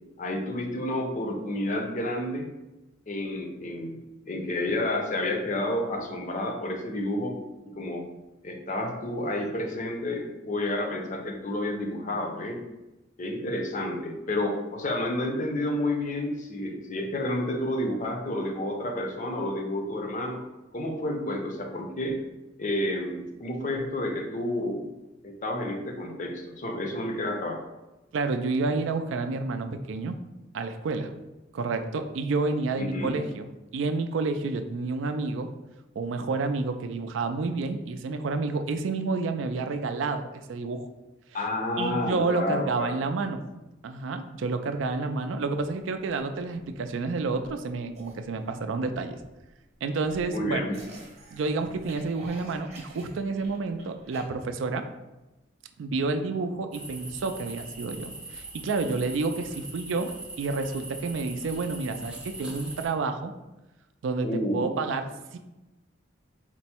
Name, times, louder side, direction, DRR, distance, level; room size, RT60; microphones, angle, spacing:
voice 1, 0.2-2.5 3.1-7.4 7.6-8.1 8.4-12.6 13.2-20.4 20.7-22.2 22.6-24.9 25.2-27.6 32.8-33.2 41.3-43.0 50.3-50.8 64.2-64.7, left 1 dB, 40° left, 3 dB, 0.5 m, -30 dB
voice 2, 28.1-30.2 30.5-31.1 31.5-35.5 36.0-40.9 41.8-43.4 43.8-49.2 49.8-50.7 51.3-54.8 55.8-60.1 60.4-63.3 64.0-65.4, right 3 dB, 80° right, 8 dB, 0.4 m, -29 dB
sound 1, 46.1-54.2, right 2 dB, 35° right, 0.9 m, -50 dB
sound 2, 56.7-62.9, right 2 dB, 5° right, 0.5 m, -41 dB
4.4 x 2.0 x 4.2 m, 1.0 s
head